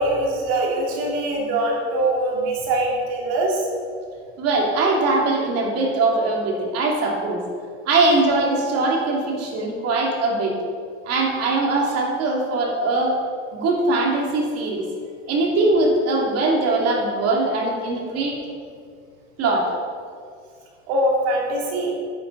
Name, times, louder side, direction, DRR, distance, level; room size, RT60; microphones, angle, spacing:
voice 1, 0.0-3.6 20.9-21.9, right 1 dB, 80° right, -2 dB, 3.0 m, -22 dB
voice 2, 4.4-7.4 7.8-10.6 11.0-13.1 13.5-14.9 15.3-18.4 19.4-19.7, right 2 dB, 55° right, -1 dB, 2.8 m, -21 dB
11.0 x 9.9 x 4.1 m, 2.2 s
supercardioid pair, 115°, 30 cm